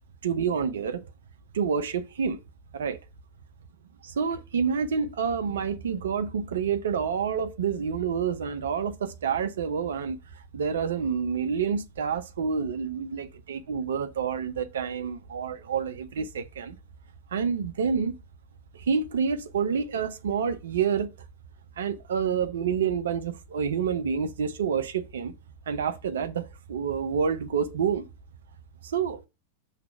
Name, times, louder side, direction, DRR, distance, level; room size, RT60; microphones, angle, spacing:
voice 1, 0.2-1.0 1.5-2.4 2.7-3.0 4.0-10.2 10.5-16.8 17.3-18.1 18.7-21.1 21.8-25.3 25.7-28.1 28.8-29.2, right 6 dB, 65° right, 0.7 m, -28 dB
6.0 x 3.3 x 5.5 m
figure-of-eight pair, 90°, 0 cm